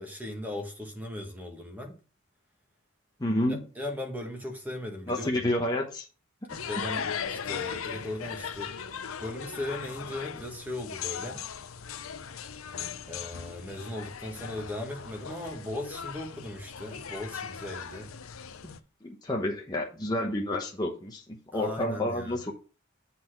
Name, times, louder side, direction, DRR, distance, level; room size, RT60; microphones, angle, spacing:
voice 1, 0.0-1.9 3.5-5.4 6.7-8.7 9.2-11.4 13.1-18.1 21.5-22.4, left 1 dB, 10° right, 1.6 m, -38 dB
voice 2, 3.2-3.6 5.1-6.1 6.5-6.7 18.6-18.7 19.0-22.5, left 1 dB, 20° left, 1.0 m, -30 dB
sound 1, 6.5-18.8, left 7 dB, 70° left, 0.6 m, -38 dB
7.6 x 4.2 x 5.9 m
head